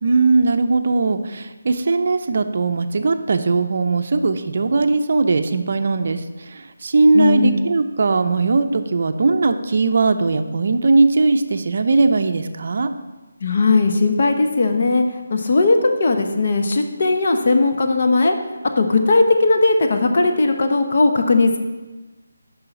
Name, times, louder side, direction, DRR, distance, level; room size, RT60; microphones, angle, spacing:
voice 1, 0.0-12.9, right 3 dB, 50° right, 8 dB, 0.5 m, -19 dB
voice 2, 7.1-7.5 13.4-15.0 15.3-18.3 18.8-21.6, left 3 dB, 50° left, 4 dB, 0.9 m, -17 dB
6.8 x 5.6 x 5.6 m, 1.2 s
figure-of-eight pair, 165°, 0 cm